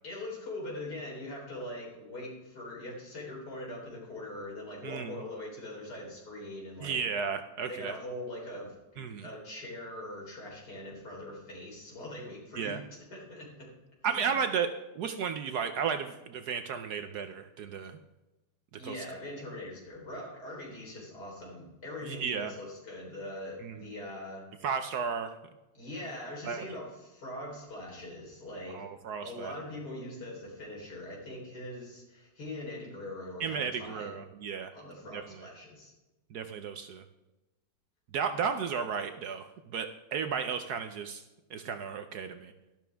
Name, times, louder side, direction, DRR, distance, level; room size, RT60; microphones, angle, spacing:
voice 1, 0.0-7.0 7.7-12.8 13.1-13.7 14.0-14.3 18.8-24.4 25.7-28.9 29.2-34.2 34.7-35.9, left 1 dB, 60° left, -2 dB, 4.5 m, -42 dB
voice 2, 4.8-5.2 6.8-7.9 9.0-9.3 12.6-12.8 14.0-14.7 15.0-18.0 18.8-19.0 22.0-22.5 23.6-23.9 24.6-25.3 26.4-26.6 28.7-29.5 33.4-34.7 35.1-35.2 36.3-37.0 38.1-39.5 39.7-41.2 41.5-42.5, right 6 dB, 65° right, 8 dB, 1.1 m, -33 dB
12.5 x 12.0 x 3.4 m, 1.0 s
omnidirectional pair, 2.0 m